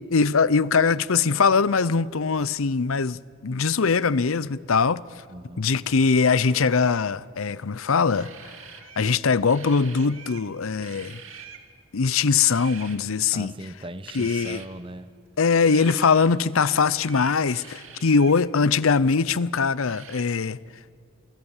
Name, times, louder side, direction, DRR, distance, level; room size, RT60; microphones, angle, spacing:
voice 1, 0.0-5.0 5.6-8.3 9.0-11.2 11.9-13.5 14.1-14.6 15.4-20.6, left 5 dB, 85° left, 0.7 m, -22 dB
voice 2, 5.3-5.7 13.3-15.1, right 1 dB, 25° right, 0.9 m, -39 dB
sound 1, 6.0-6.7 8.1-9.2 9.4-10.5 10.8-11.7 12.3-13.0 14.0-14.7 15.6-16.3 17.0-18.4 19.9-20.2, right 7 dB, 80° right, 2.3 m, -44 dB
28.5 x 24.0 x 7.3 m
head